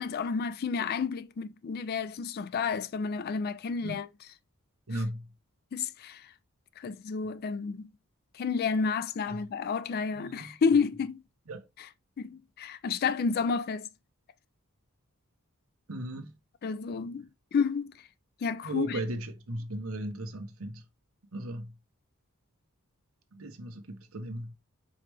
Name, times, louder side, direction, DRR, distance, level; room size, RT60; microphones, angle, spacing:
voice 1, 0.0-4.1 5.7-6.3 6.8-7.9 8.3-11.2 12.2-13.9 16.6-17.9 18.4-19.0, left 5 dB, 45° left, 0.3 m, -30 dB
voice 2, 4.9-5.3 9.3-9.5 10.1-10.6 11.5-11.7 15.9-16.3 18.6-20.8 21.3-21.7 23.3-24.5, right 1 dB, 70° right, 1.0 m, -37 dB
4.9 x 3.1 x 3.3 m
head